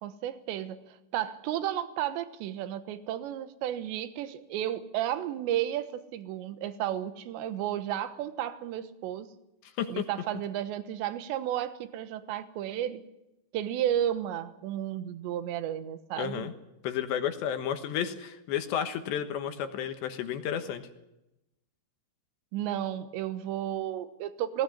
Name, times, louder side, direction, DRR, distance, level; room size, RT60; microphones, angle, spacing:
voice 1, 0.0-9.3 9.9-13.0 13.5-16.5 22.5-24.6, right 11 dB, 75° right, 11 dB, 3.3 m, -33 dB
voice 2, 9.6-10.0 16.2-16.5 16.8-20.9, left 9 dB, 75° left, 8 dB, 3.3 m, -32 dB
19.5 x 17.5 x 9.9 m, 0.90 s
omnidirectional pair, 5.6 m